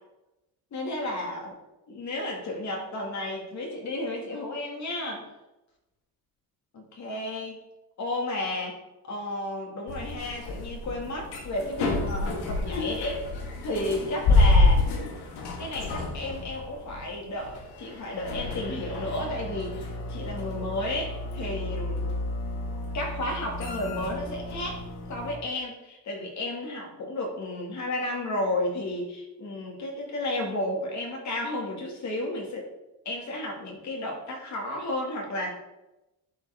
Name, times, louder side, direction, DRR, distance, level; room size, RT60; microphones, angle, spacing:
voice 1, 0.7-1.6 1.9-5.3 6.7-7.6 8.0-8.8 9.0-13.3 13.6-14.9 15.6-22.1 22.9-24.8 25.1-32.7 33.1-35.5, left 1 dB, 45° left, 1 dB, 2.2 m, -32 dB
sound 1, 9.9-25.4, left 2 dB, 75° left, 1.7 m, -29 dB
11.5 x 4.6 x 3.6 m, 0.97 s
cardioid pair, 135°, 40 cm